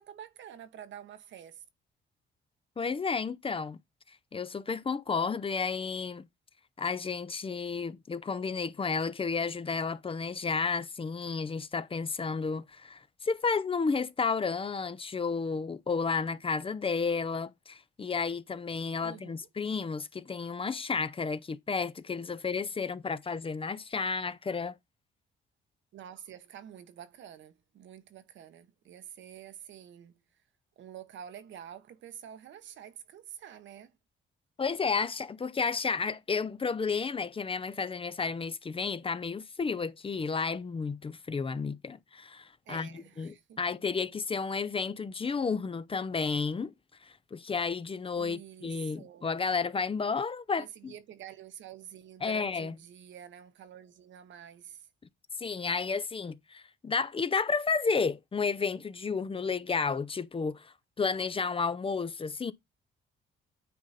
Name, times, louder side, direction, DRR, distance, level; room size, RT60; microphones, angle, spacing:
voice 1, 0.0-1.6 19.0-19.5 25.9-30.2 30.8-33.9 42.6-43.6 48.2-49.3 50.6-54.9, right 10 dB, 70° right, 1.1 m, -48 dB
voice 2, 2.8-3.8 4.3-6.3 6.8-24.8 34.6-46.7 47.0-50.9 52.2-52.7 55.4-62.5, left 5 dB, 25° left, 0.6 m, -32 dB
9.3 x 3.8 x 4.1 m
cardioid pair, 90°, 20 cm